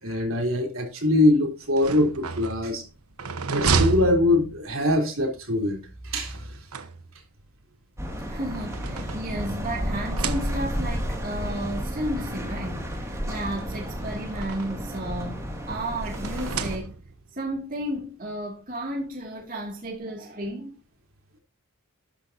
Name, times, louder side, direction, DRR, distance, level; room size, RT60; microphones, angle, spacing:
voice 1, 0.0-2.8 3.5-5.8 6.0-6.4, left 1 dB, 65° right, 3.7 m, -23 dB
sound 1, 1.6-4.9 6.2-7.4 8.2-9.6 10.0-10.9 11.9-12.0 12.3-12.4 13.6-14.9 16.1-17.3, right 4 dB, 80° right, 1.2 m, -31 dB
sound 2, 8.0-16.8, equal, 15° right, 2.4 m, -32 dB
voice 2, 8.3-16.9 17.3-20.7, right 1 dB, 40° right, 2.8 m, -33 dB
12.5 x 10.5 x 2.8 m
head